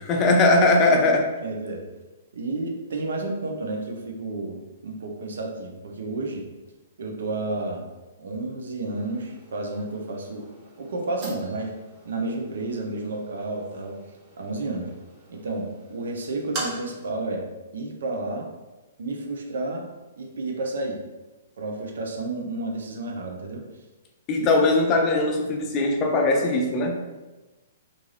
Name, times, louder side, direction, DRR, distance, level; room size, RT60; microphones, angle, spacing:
voice 1, 0.0-1.2 24.3-26.9, left 2 dB, 25° left, 2 dB, 0.4 m, -20 dB
voice 2, 1.4-1.9 2.3-6.4 7.0-7.9 8.2-10.5 10.8-11.7 12.0-14.0 14.4-14.9 15.3-17.5 17.7-18.5 19.0-19.9 20.2-21.0 21.6-23.6 24.3-24.5, right 2 dB, 75° right, 2 dB, 0.6 m, -31 dB
sound 1, 8.8-17.1, right 2 dB, 35° right, 0.8 m, -42 dB
2.5 x 2.3 x 3.2 m, 1.1 s
hypercardioid pair, 145°, 0 cm